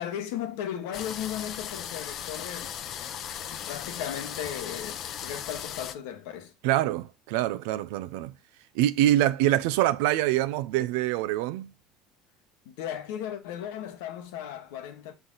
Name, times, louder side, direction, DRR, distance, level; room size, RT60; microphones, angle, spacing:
voice 1, 0.0-2.8 3.5-6.5 12.6-15.1, left 10 dB, 80° left, 1.1 m, -36 dB
sound 1, 0.9-5.9, left 9 dB, 55° left, 0.7 m, -37 dB
voice 2, 6.6-8.3 8.7-11.7, right 14 dB, 75° right, 0.4 m, -25 dB
6.1 x 4.0 x 3.9 m
supercardioid pair, 90°, 0 cm